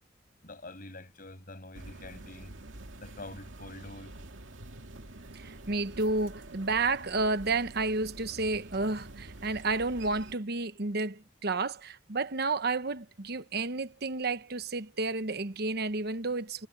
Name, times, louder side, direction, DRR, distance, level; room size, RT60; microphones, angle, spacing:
voice 1, 0.4-2.6 3.0-4.1, left 2 dB, 45° left, 7.0 m, -46 dB
sound 1, 1.7-10.3, right 2 dB, 85° right, 2.3 m, -47 dB
voice 2, 5.3-16.7, right 3 dB, 55° right, 1.1 m, -31 dB
head